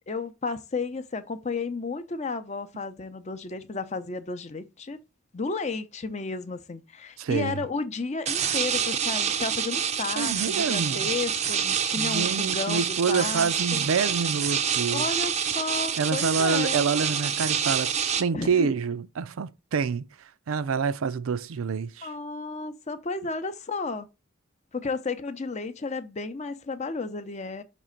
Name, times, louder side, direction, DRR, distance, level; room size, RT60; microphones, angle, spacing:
voice 1, 0.1-5.0 5.3-13.9 14.9-16.8 18.3-18.7 22.0-24.1 24.7-27.6, left 4 dB, 35° left, 0.6 m, -33 dB
voice 2, 7.2-7.6 10.2-11.0 11.9-15.1 16.0-17.9 18.2-20.1 20.5-22.1, right 5 dB, 90° right, 0.5 m, -27 dB
sound 1, 8.3-18.2, right 8 dB, 35° right, 0.5 m, -27 dB
6.0 x 3.2 x 5.1 m
head